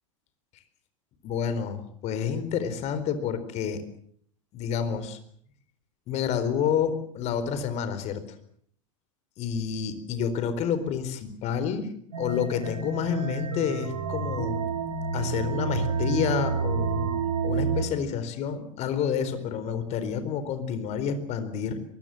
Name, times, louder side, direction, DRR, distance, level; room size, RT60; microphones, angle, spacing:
voice 1, 1.2-3.8 4.5-5.2 6.1-8.2 9.4-11.9 12.2-14.6 15.1-17.1 17.4-21.8, left 7 dB, 40° left, 12 dB, 4.4 m, -29 dB
sound 1, 12.1-17.8, right 5 dB, 75° right, 3.3 m, -29 dB
23.0 x 21.5 x 7.9 m, 0.63 s
hypercardioid pair, 95°, 17 cm